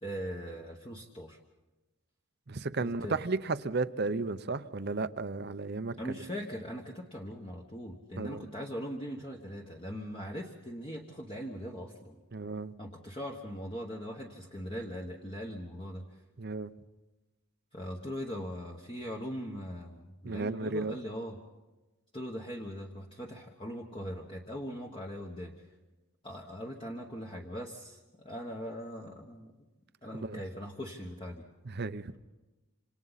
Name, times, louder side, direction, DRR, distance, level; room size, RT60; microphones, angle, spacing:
voice 1, 0.0-1.4 2.8-3.2 6.0-12.2 12.8-16.2 17.7-21.4 22.1-25.5 26.2-29.6 30.0-31.5, equal, 25° left, 0 dB, 1.2 m, -40 dB
voice 2, 2.5-5.9 8.2-8.4 12.3-12.7 16.4-16.7 20.2-20.9 30.2-30.4 31.8-32.0, right 3 dB, 45° right, 13 dB, 0.7 m, -33 dB
27.5 x 27.0 x 4.1 m, 1.1 s
head